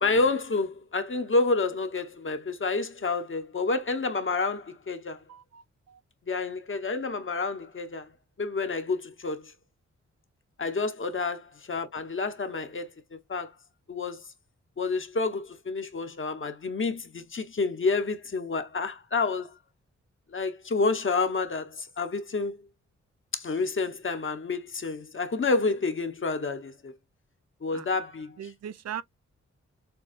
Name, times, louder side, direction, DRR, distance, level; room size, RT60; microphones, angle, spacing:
voice 1, 0.0-5.2 6.3-8.1 8.4-9.5 10.6-13.5 13.9-14.2 14.8-19.5 20.3-22.6 23.3-26.9 27.6-28.3, left 3 dB, 45° left, 1.0 m, -29 dB
voice 2, 5.3-6.0 10.6-10.8 27.7-27.9 28.4-29.0, right 9 dB, 65° right, 0.5 m, -40 dB
6.9 x 2.3 x 2.5 m
supercardioid pair, 45°, 29 cm